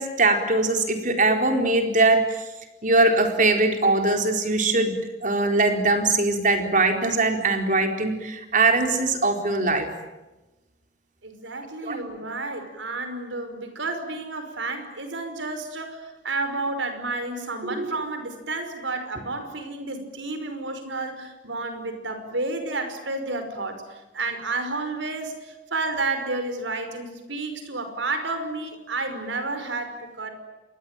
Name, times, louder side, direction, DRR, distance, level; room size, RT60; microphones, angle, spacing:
voice 1, 0.0-2.3 2.8-4.9 5.2-9.9 11.8-12.0 17.8-17.9, right 2 dB, 45° right, 4 dB, 4.3 m, -21 dB
voice 2, 11.2-30.3, right 3 dB, 90° right, 8 dB, 5.4 m, -31 dB
28.0 x 23.0 x 9.1 m, 1.1 s
head